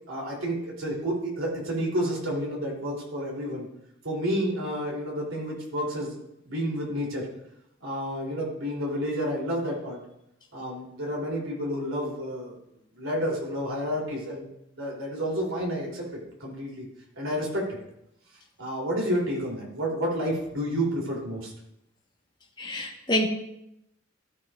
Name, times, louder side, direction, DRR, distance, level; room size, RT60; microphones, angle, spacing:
voice 1, 0.0-3.6 4.0-6.2 6.4-7.3 7.8-10.0 10.5-12.5 13.0-14.4 14.7-16.9 17.1-17.8 18.6-21.5, equal, 85° right, 3.2 m, -30 dB
voice 2, 22.6-23.3, left 1 dB, 20° left, 1.2 m, -26 dB
14.0 x 8.8 x 2.5 m
head